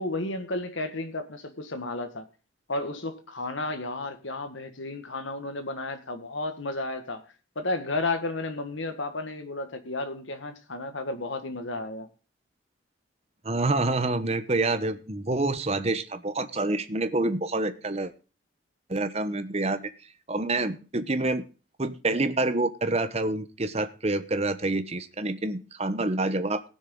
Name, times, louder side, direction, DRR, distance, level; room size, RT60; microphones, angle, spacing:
voice 1, 0.0-2.2 2.7-7.2 7.5-12.1, left 2 dB, 75° left, 1.7 m, -32 dB
voice 2, 13.4-18.1 18.9-19.8 20.3-21.4 21.8-26.6, right 2 dB, 30° right, 1.0 m, -27 dB
19.5 x 6.5 x 3.9 m
head